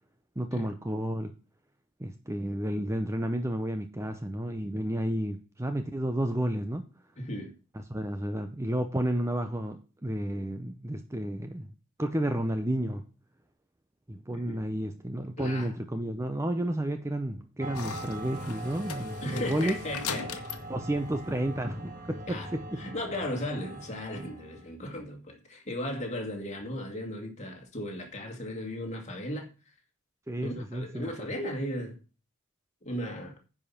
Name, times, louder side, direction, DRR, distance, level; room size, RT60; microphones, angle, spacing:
voice 1, 0.4-1.3 2.0-6.9 7.7-11.7 12.0-13.0 14.1-19.8 20.7-22.8 30.3-31.0, right 1 dB, 10° right, 0.6 m, -31 dB
voice 2, 7.2-7.5 14.3-14.6 15.4-15.7 19.2-20.4 22.3-22.5 22.8-29.5 30.4-31.9 32.8-33.4, left 1 dB, 30° left, 2.1 m, -36 dB
sound 1, 17.6-24.6, right 1 dB, 35° right, 1.6 m, -41 dB
sound 2, 17.7-22.0, left 6 dB, 80° left, 1.3 m, -41 dB
10.0 x 4.9 x 5.7 m
head